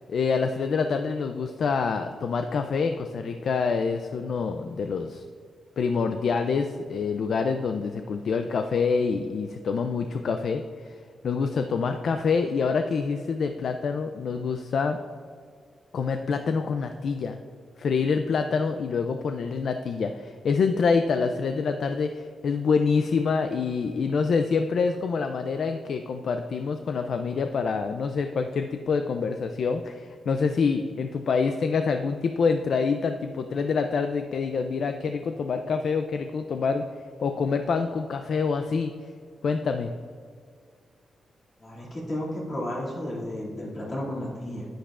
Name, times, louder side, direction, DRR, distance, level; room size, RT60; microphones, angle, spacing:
voice 1, 0.1-5.2 5.8-11.0 11.2-15.0 15.9-17.4 17.8-36.8 37.2-38.9 39.4-39.9, left 5 dB, 55° left, 7 dB, 0.3 m, -26 dB
voice 2, 41.6-44.7, left 1 dB, 35° left, -5 dB, 2.3 m, -33 dB
10.0 x 10.0 x 2.4 m, 2.1 s
wide cardioid pair, 175°, 0 cm